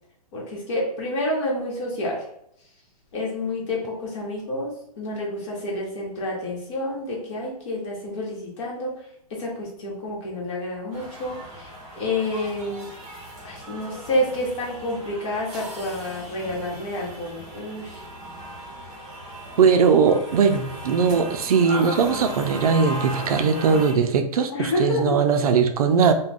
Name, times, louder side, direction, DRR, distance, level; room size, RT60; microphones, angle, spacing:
voice 1, 0.3-2.2 3.1-8.9 9.3-12.8 13.4-18.0 24.5-25.2, left 1 dB, 50° left, -3 dB, 1.1 m, -29 dB
sound 1, 10.9-23.9, right 1 dB, 20° right, 0.8 m, -37 dB
voice 2, 19.6-26.1, right 6 dB, 65° right, 7 dB, 0.4 m, -20 dB
2.4 x 2.2 x 3.4 m, 0.73 s
hypercardioid pair, 145°, 20 cm